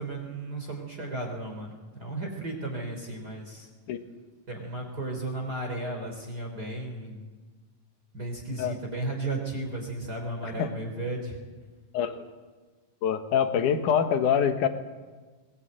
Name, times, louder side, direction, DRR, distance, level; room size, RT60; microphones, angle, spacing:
voice 1, 0.0-3.7 4.5-7.3 8.1-11.4, right 2 dB, 30° right, 1 dB, 3.8 m, -34 dB
voice 2, 13.0-14.7, left 8 dB, 75° left, 8 dB, 2.8 m, -25 dB
21.0 x 20.0 x 9.0 m, 1.3 s
omnidirectional pair, 3.7 m